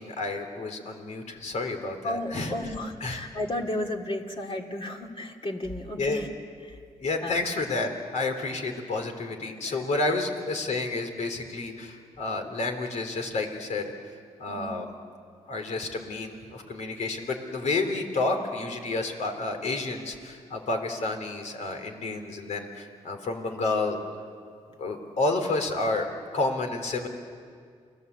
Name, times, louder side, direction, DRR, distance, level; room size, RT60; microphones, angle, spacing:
voice 1, 0.0-2.5 3.0-3.2 6.0-6.2 7.0-13.9 14.4-14.9 15.5-24.0 24.8-26.1 26.3-27.1, left 3 dB, 70° left, 4 dB, 3.6 m, -30 dB
voice 2, 2.0-6.3 6.6-6.8 7.2-7.3 9.7-9.8 14.5-14.8, left 1 dB, 45° left, 1 dB, 3.1 m, -33 dB
29.5 x 19.0 x 8.3 m, 2.1 s
cardioid pair, 60°, 13 cm